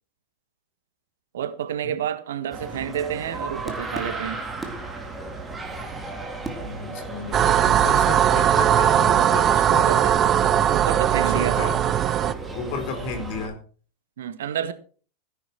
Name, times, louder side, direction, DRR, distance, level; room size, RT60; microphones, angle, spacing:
voice 1, 1.3-4.4 9.7-10.1 10.7-11.6 14.2-14.7, right 9 dB, 60° right, 1.3 m, -29 dB
sound 1, 2.5-13.5, right 3 dB, 15° right, 3.0 m, -35 dB
voice 2, 6.6-9.9 11.2-11.8 12.5-13.6, left 4 dB, 45° left, 4.4 m, -33 dB
sound 2, 7.3-12.3, right 10 dB, 30° right, 0.8 m, -19 dB
16.5 x 10.0 x 4.6 m
figure-of-eight pair, 90°, 0 cm